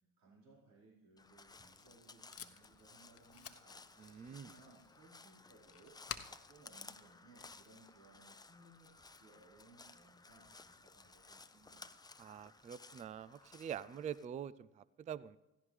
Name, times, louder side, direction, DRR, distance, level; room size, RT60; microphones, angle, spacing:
voice 1, 0.2-3.8 4.3-5.9 6.2-11.9, right 2 dB, 55° right, -6 dB, 4.6 m, -64 dB
Crow, 1.2-14.3, left 3 dB, 10° left, 0.7 m, -58 dB
Packing tape duct tape, 1.4-7.9, left 8 dB, 35° left, 1.0 m, -53 dB
voice 2, 4.0-4.5 12.2-15.4, right 9 dB, 20° right, 20 dB, 0.3 m, -45 dB
16.5 x 16.0 x 3.3 m, 1.0 s
hypercardioid pair, 70°, 40 cm